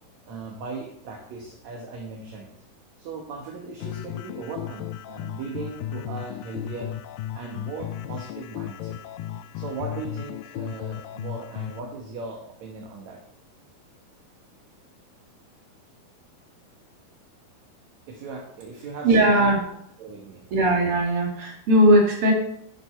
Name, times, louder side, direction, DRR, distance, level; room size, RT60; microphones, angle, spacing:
voice 1, 0.3-2.5 3.0-6.9 7.3-9.0 9.6-13.2 18.1-19.5 20.0-20.4, right 4 dB, 60° right, 1 dB, 2.2 m, -38 dB
sound 1, 3.8-11.8, left 11 dB, 80° left, 2.1 m, -35 dB
voice 2, 19.0-19.6 20.5-22.3, right 1 dB, 40° right, -1 dB, 2.8 m, -18 dB
10.5 x 8.1 x 4.3 m, 0.69 s
omnidirectional pair, 4.3 m